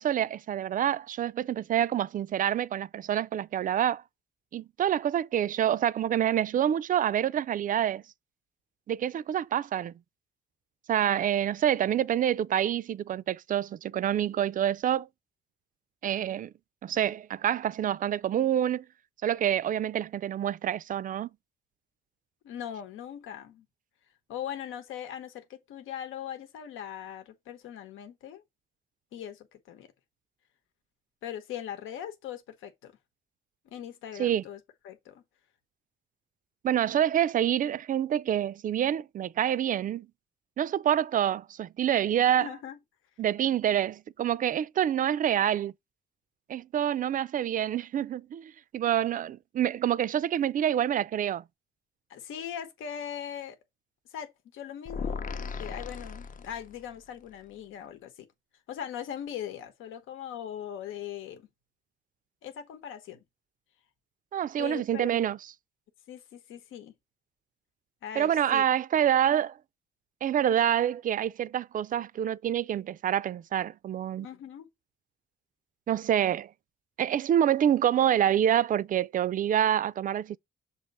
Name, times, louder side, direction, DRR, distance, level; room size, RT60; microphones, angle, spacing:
voice 1, 0.0-4.0 4.5-8.0 8.9-9.9 10.9-15.1 16.0-16.5 16.8-18.8 19.2-21.3 34.2-34.4 36.6-40.1 40.6-42.5 43.2-45.7 46.5-51.4 64.3-65.4 68.2-69.5 70.2-74.3 75.9-76.5 77.0-80.4, right 10 dB, 45° right, 0.4 m, -27 dB
voice 2, 22.4-23.6 24.3-28.4 29.1-29.9 31.2-32.9 33.6-35.2 42.4-42.8 52.1-53.6 54.1-58.3 58.7-61.5 62.4-63.2 64.6-65.2 66.1-66.9 68.0-68.6 74.2-74.7, left 9 dB, 85° left, 1.1 m, -40 dB
sound 1, 54.9-57.0, left 5 dB, 40° left, 0.7 m, -36 dB
7.2 x 2.9 x 5.3 m
cardioid pair, 90°, 20 cm